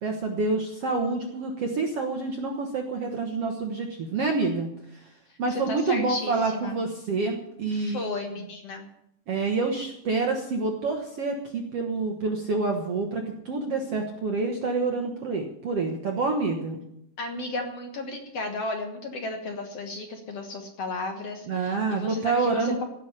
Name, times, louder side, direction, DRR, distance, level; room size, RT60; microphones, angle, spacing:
voice 1, 0.0-5.0 5.4-8.0 9.3-16.8 21.5-22.8, right 3 dB, 60° right, 3 dB, 1.6 m, -27 dB
voice 2, 5.5-6.7 7.7-8.9 17.2-22.8, left 2 dB, 55° left, 4 dB, 1.9 m, -34 dB
16.5 x 6.6 x 9.9 m, 0.77 s
omnidirectional pair, 4.6 m